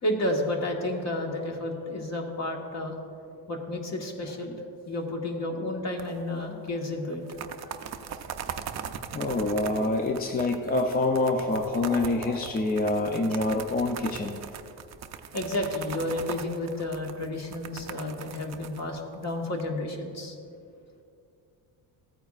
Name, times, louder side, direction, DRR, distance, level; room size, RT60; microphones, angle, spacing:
voice 1, 0.0-3.0 3.5-4.6 4.9-7.2 15.3-20.4, left 1 dB, 40° left, 1 dB, 1.5 m, -31 dB
sound 1, 6.0-6.4 6.7-6.8 7.1-19.6, right 8 dB, 40° right, 0.5 m, -40 dB
voice 2, 9.1-14.4, left 2 dB, 25° left, 4 dB, 0.4 m, -26 dB
sound 2, 9.2-10.5 10.8-10.9 11.1-13.3, right 2 dB, 20° right, 0.9 m, -40 dB
16.0 x 8.9 x 2.4 m, 2.5 s
cardioid pair, 125°, 42 cm